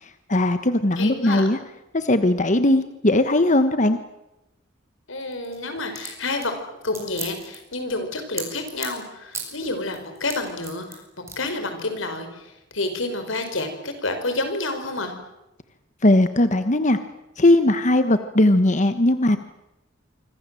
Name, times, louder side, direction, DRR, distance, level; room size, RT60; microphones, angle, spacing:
voice 1, 0.0-1.6 1.9-4.0 16.0-17.0 17.4-19.4, left 1 dB, 40° left, 10 dB, 1.2 m, -19 dB
voice 2, 1.0-1.5 5.1-6.6 6.8-15.1, left 2 dB, 90° left, 7 dB, 5.4 m, -29 dB
sound 1, 5.2-9.0 9.3-9.6 9.9-11.0 11.3-11.4, right 4 dB, 15° right, 7.1 m, -35 dB
26.0 x 25.5 x 7.7 m, 0.93 s
head